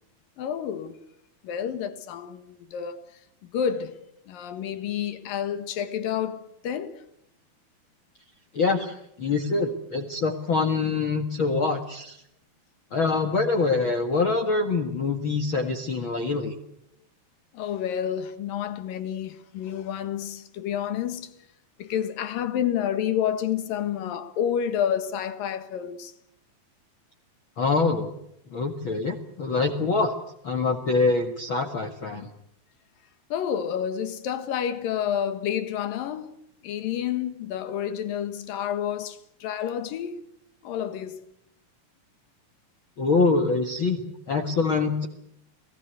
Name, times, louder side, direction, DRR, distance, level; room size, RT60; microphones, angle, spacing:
voice 1, 0.4-1.0 1.4-3.2 3.5-4.0 4.3-7.0 15.6-15.7 17.5-21.3 21.8-26.1 29.6-29.7 33.3-36.3 36.6-40.2 40.6-41.2, left 9 dB, 70° left, 3.3 m, -29 dB
voice 2, 8.5-12.2 12.9-16.5 27.6-28.1 28.5-30.1 30.4-32.3 43.0-45.1, left 3 dB, 45° left, 2.0 m, -25 dB
29.5 x 19.0 x 8.1 m
omnidirectional pair, 4.2 m